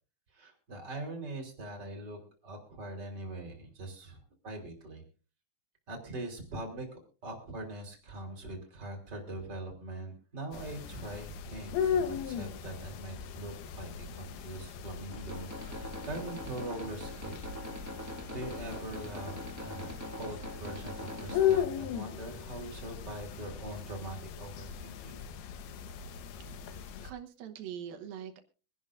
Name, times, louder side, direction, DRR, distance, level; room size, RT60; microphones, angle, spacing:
voice 1, 0.3-5.0 5.9-17.4 18.0-19.9 20.2-25.2, right 2 dB, 30° right, 2 dB, 3.7 m, -42 dB
sound 1, 10.5-27.1, left 8 dB, 85° left, 3.0 m, -37 dB
sound 2, 15.1-21.6, equal, 5° right, 2.5 m, -43 dB
voice 2, 26.4-28.4, right 9 dB, 75° right, 7 dB, 2.8 m, -44 dB
24.5 x 11.0 x 2.6 m, 0.36 s
omnidirectional pair, 4.4 m